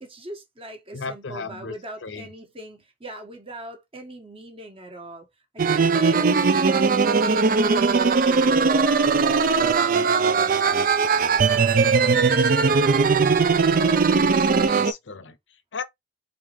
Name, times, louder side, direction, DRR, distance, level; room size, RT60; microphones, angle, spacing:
voice 1, 0.0-5.3 5.5-6.7 7.2-10.7 11.3-13.3, right 1 dB, 30° right, 1.3 m, -42 dB
voice 2, 0.9-1.7 2.0-2.3 12.0-12.4 14.1-15.8, left 4 dB, 85° left, 0.7 m, -36 dB
sound 1, 5.6-14.9, right 4 dB, 50° right, 0.4 m, -19 dB
4.1 x 3.8 x 3.1 m
head